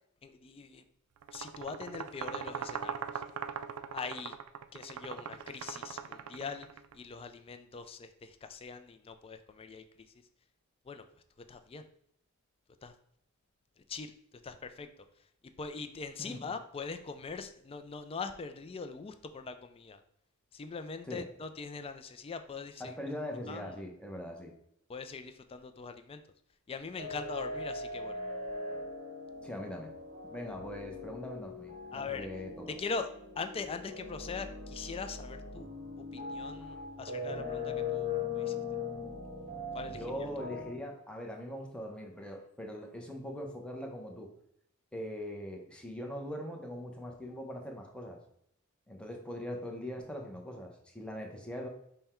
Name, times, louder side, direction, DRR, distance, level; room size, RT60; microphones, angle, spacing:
voice 1, 0.2-0.8 1.3-3.2 3.9-4.3 4.7-6.7 6.9-9.8 10.9-11.0 11.5-11.8 12.8-12.9 13.9-14.1 14.4-14.9 15.4-20.0 20.5-23.0 23.5-23.7 24.9-26.2 26.7-28.1 31.9-32.3 32.7-33.1 33.4-35.7 36.0-38.5 39.7-40.0, left 4 dB, 25° left, 8 dB, 0.3 m, -42 dB
sound 1, 1.2-6.9, right 7 dB, 80° right, 0.3 m, -41 dB
voice 2, 22.8-24.5 29.4-29.9 30.3-32.7 36.6-36.8 39.9-44.3 44.9-48.2 48.9-51.7, equal, 5° left, 1 dB, 0.7 m, -41 dB
sound 2, 27.0-40.7, left 4 dB, 35° right, 0.8 m, -40 dB
5.5 x 2.2 x 4.3 m, 0.72 s
head